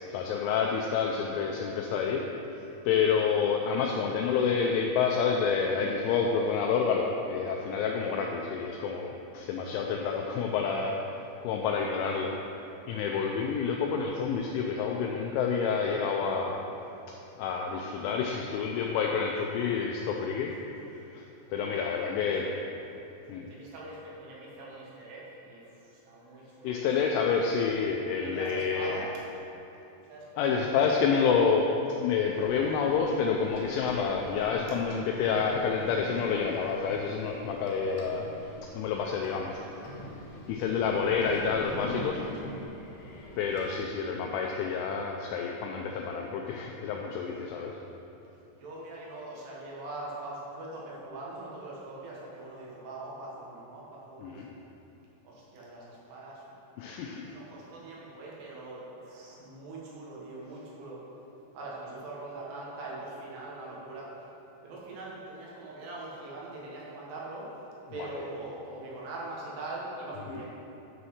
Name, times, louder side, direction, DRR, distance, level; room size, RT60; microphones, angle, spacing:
voice 1, 0.1-2.3 2.9-11.0 11.4-12.3 12.9-16.7 17.1-20.5 21.1-21.2 21.5-22.5 23.3-23.5 26.6-29.0 30.4-31.7 32.0-38.3 38.7-39.9 40.5-42.2 43.4-47.8 54.2-54.5 56.8-57.2 68.0-68.2, left 6 dB, 85° left, 1 dB, 2.7 m, -28 dB
voice 2, 1.3-1.8 21.9-22.7 23.5-27.0 28.2-29.2 30.1-30.6 37.8-38.0 48.5-54.4 55.2-56.6 57.1-61.0 61.5-64.3 64.6-70.5, right 2 dB, 70° right, -5 dB, 3.7 m, -42 dB
sound 1, 32.3-43.8, left 1 dB, 70° left, 2.7 m, -44 dB
10.0 x 4.2 x 6.4 m, 3.0 s
omnidirectional pair, 6.0 m